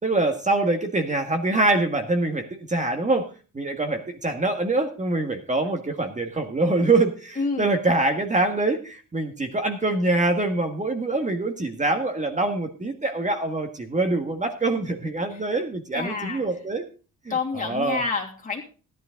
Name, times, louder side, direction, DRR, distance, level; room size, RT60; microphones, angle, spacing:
voice 1, 0.0-3.3 3.5-16.8 17.3-18.0, right 2 dB, 25° right, 6 dB, 1.8 m, -24 dB
voice 2, 7.4-7.7 15.3-15.4 15.9-16.6 17.3-18.6, left 4 dB, 25° left, -1 dB, 2.8 m, -28 dB
13.5 x 11.0 x 3.9 m, 0.35 s
cardioid pair, 90°, 30 cm